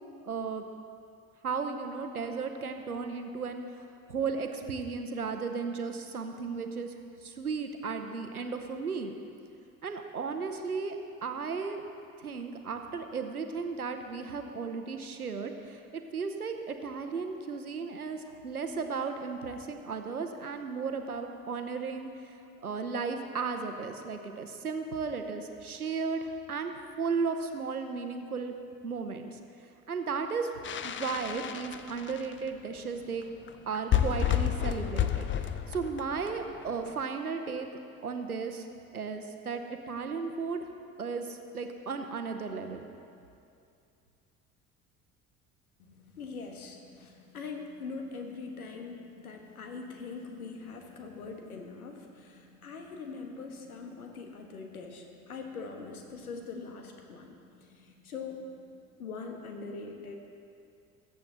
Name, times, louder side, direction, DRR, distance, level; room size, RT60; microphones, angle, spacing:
voice 1, 0.2-0.7 1.4-3.6 4.1-6.9 7.2-9.1 9.8-11.0 11.2-11.8 12.2-22.3 22.6-28.6 28.8-29.4 29.9-30.5 30.8-33.2 33.7-37.7 38.0-38.7 38.9-39.6 39.9-40.7 41.0-42.9, right 5 dB, 90° right, 6 dB, 0.9 m, -35 dB
sound 1, 30.6-32.5 33.2-33.3 33.5-33.6 33.7-36.9, left 10 dB, 25° left, 0.7 m, -30 dB
voice 2, 45.8-58.6 59.0-60.2, left 4 dB, 80° left, 3 dB, 1.5 m, -42 dB
20.5 x 8.3 x 3.9 m, 2.5 s
figure-of-eight pair, 60°, 43 cm